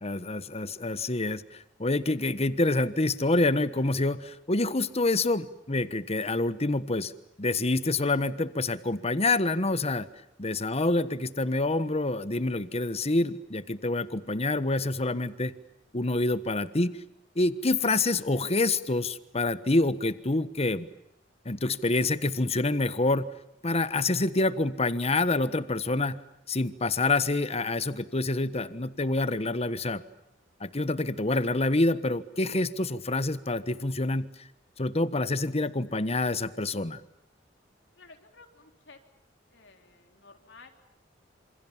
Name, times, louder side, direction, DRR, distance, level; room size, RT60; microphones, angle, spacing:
voice 1, 0.0-7.1 7.4-10.1 10.4-15.5 15.9-17.0 17.3-20.9 21.4-23.3 23.6-26.2 26.5-30.0 30.6-34.3 34.8-37.0, left 2 dB, 35° left, 14 dB, 1.3 m, -27 dB
voice 2, 38.0-39.0 39.5-40.8, left 3 dB, 70° left, 5 dB, 3.9 m, -54 dB
28.0 x 27.5 x 7.3 m, 0.80 s
head